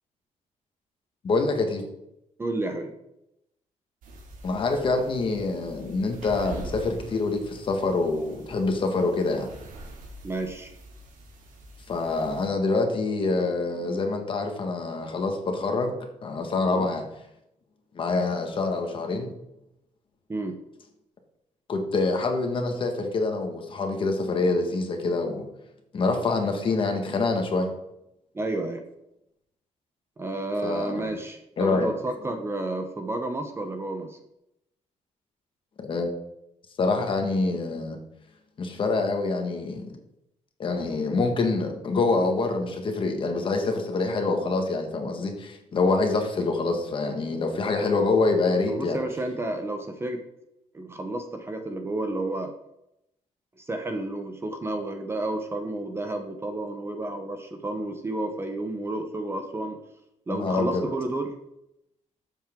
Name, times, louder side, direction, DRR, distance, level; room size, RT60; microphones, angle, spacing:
voice 1, 1.2-1.8 4.4-9.5 11.9-15.9 16.2-17.1 17.9-19.3 21.7-25.5 25.9-27.7 30.6-31.1 31.6-31.9 35.8-36.1 36.8-38.0 38.6-39.9 40.6-49.0 60.3-60.8, left 3 dB, 40° left, 4 dB, 1.7 m, -26 dB
voice 2, 2.4-2.9 10.2-10.7 16.7-16.9 20.3-20.6 28.3-28.8 30.2-34.2 48.7-50.2 50.7-52.5 53.6-59.8 60.3-61.3, right 2 dB, 20° right, 6 dB, 0.9 m, -31 dB
sound 1, 4.0-12.5, right 1 dB, 85° right, 2.5 m, -44 dB
13.5 x 7.5 x 3.8 m, 0.84 s
cardioid pair, 165°, 13 cm